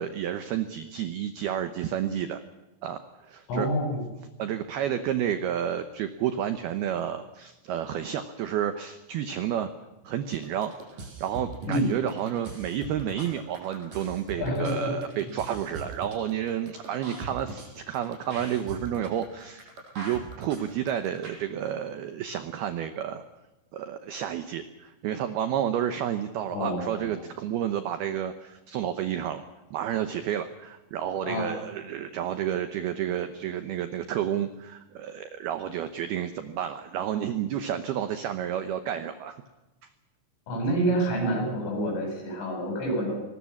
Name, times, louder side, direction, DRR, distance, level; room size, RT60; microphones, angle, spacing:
voice 1, 0.0-2.4 2.8-3.7 4.4-9.7 10.0-23.2 23.7-29.4 29.7-39.4 39.8-39.9, right 10 dB, 85° right, 9 dB, 2.2 m, -31 dB
voice 2, 3.5-4.0 11.7-12.0 14.4-14.9 15.2-15.3 26.5-27.2 31.2-31.5 40.5-43.1, right 1 dB, 70° left, 2 dB, 9.9 m, -28 dB
sound 1, 10.3-21.3, right 3 dB, 45° right, 6.4 m, -41 dB
22.5 x 19.5 x 7.2 m, 1.1 s
omnidirectional pair, 5.9 m